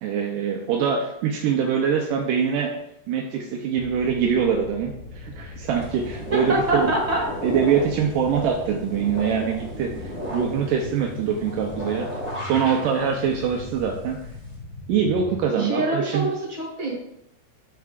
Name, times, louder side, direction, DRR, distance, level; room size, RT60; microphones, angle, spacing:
voice 1, 0.0-2.7 3.1-6.9 7.4-12.1 12.4-14.2 14.9-16.3, right 7 dB, 85° right, 1 dB, 1.9 m, -24 dB
sound 1, 3.8-15.4, left 3 dB, 75° left, 2.2 m, -40 dB
sound 2, 5.7-14.5, equal, 40° left, 0.9 m, -36 dB
voice 2, 6.3-7.2 15.5-16.9, right 2 dB, 10° right, -6 dB, 2.5 m, -25 dB
13.0 x 4.7 x 2.5 m, 0.79 s
omnidirectional pair, 4.6 m